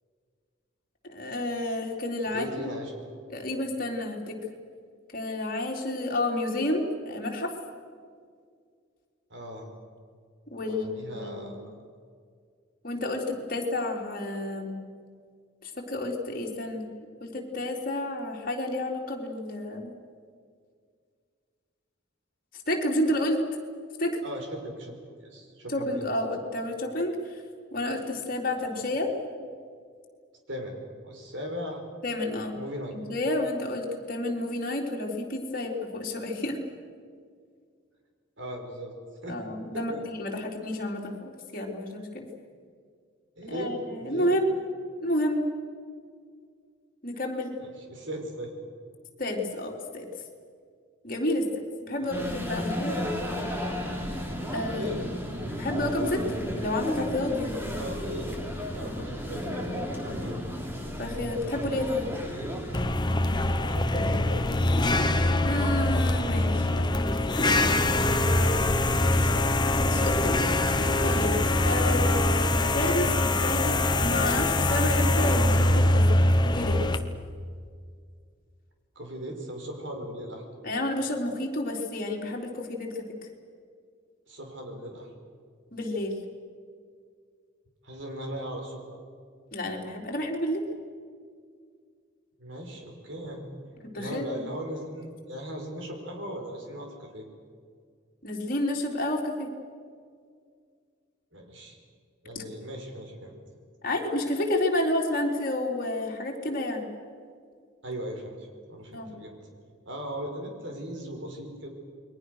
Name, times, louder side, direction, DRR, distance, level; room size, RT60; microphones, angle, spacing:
voice 1, 1.0-2.7 3.3-4.4 5.1-7.5 10.5-11.6 12.8-14.8 15.6-16.9 17.2-19.9 22.7-23.4 24.0-24.2 25.7-27.4 27.7-29.1 32.0-32.5 32.9-36.6 39.3-42.3 43.5-44.5 45.0-45.5 47.0-47.6 49.2-50.1 51.0-53.0 54.5-55.0 55.6-57.6 58.8-58.9 59.3-59.4 61.0-62.1 65.4-67.2 68.5-68.6 69.9-70.4 71.0-76.8 80.6-83.1 85.7-86.2 89.5-90.6 93.9-94.5 98.2-99.5 102.3-102.4 103.8-106.9 108.9-109.1, left 1 dB, 45° left, -1 dB, 3.8 m, -30 dB
voice 2, 2.3-2.9 9.3-9.7 10.6-11.6 24.2-26.0 28.7-28.8 30.5-30.8 31.0-31.8 32.5-33.0 38.4-38.9 39.2-39.4 39.7-40.0 43.4-44.3 47.6-48.5 52.0-52.3 54.7-55.0 57.8-58.3 58.7-60.4 63.4-65.1 67.8-67.9 68.5-69.4 78.9-80.4 84.3-85.1 87.8-89.0 92.4-93.5 93.9-97.3 101.3-101.8 102.2-103.4 107.8-109.3 109.8-111.7, equal, 65° right, 3 dB, 5.0 m, -38 dB
sound 1, 52.1-62.8, equal, 10° right, 3.4 m, -33 dB
sound 2, 62.7-77.0, left 1 dB, 20° left, 1.0 m, -23 dB
29.0 x 22.0 x 6.5 m, 2.1 s
head